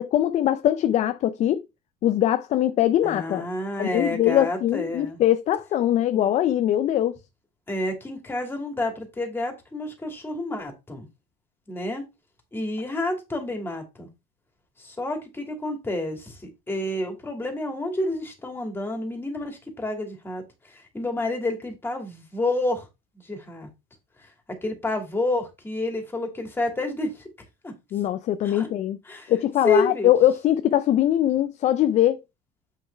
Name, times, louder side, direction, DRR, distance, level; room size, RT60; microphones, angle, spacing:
voice 1, 0.0-1.6 2.0-3.5 3.8-7.2 27.9-29.0 29.3-32.2, left 12 dB, 40° left, 0.5 m, -22 dB
voice 2, 3.0-5.2 7.7-11.1 11.7-12.0 12.5-14.1 14.8-20.4 20.7-22.9 23.2-23.7 24.2-24.3 24.6-27.2 27.6-27.7 28.4-28.7 29.1-29.3 29.6-30.1, left 2 dB, 15° left, 2.4 m, -29 dB
7.6 x 6.5 x 3.4 m
cardioid pair, 140°, 17 cm